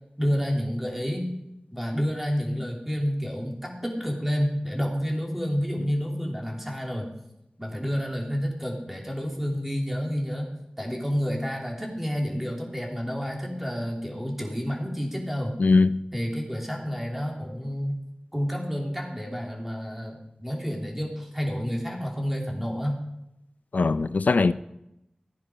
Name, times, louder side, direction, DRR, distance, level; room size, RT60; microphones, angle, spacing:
voice 1, 0.2-1.3 1.7-7.1 7.6-10.5 10.8-15.6 16.1-18.0 18.3-23.0, equal, 10° right, 3.3 m, -29 dB
voice 2, 15.6-16.0 23.7-24.5, left 3 dB, 90° left, 0.5 m, -20 dB
15.0 x 9.9 x 5.1 m
wide cardioid pair, 60°, 3 cm